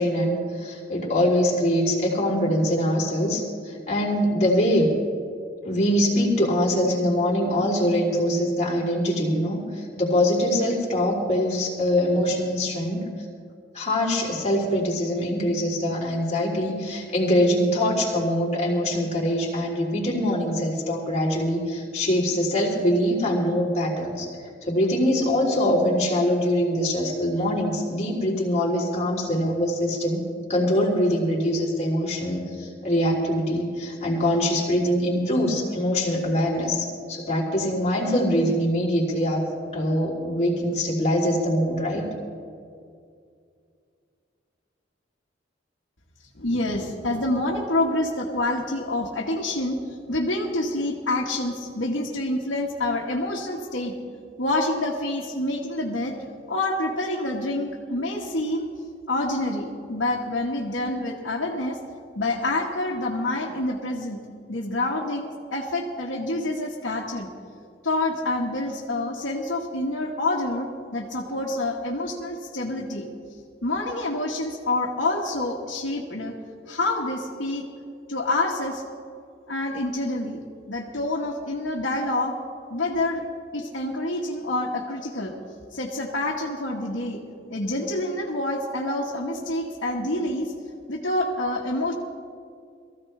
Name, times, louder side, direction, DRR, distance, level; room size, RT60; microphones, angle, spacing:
voice 1, 0.0-4.9 5.6-13.1 13.7-24.3 24.6-30.2 30.5-39.5 39.7-42.1, equal, 35° left, -4 dB, 3.5 m, -23 dB
voice 2, 46.4-53.9 54.4-56.1 56.5-58.7 59.1-61.8 62.2-64.2 64.5-67.3 67.8-73.1 73.6-76.3 76.7-77.7 78.1-78.8 79.5-80.4 80.7-82.4 82.7-83.2 83.5-85.3 85.7-87.2 87.5-90.5 90.9-91.9, left 2 dB, 90° left, -4 dB, 1.6 m, -27 dB
22.5 x 15.0 x 3.4 m, 2.3 s
head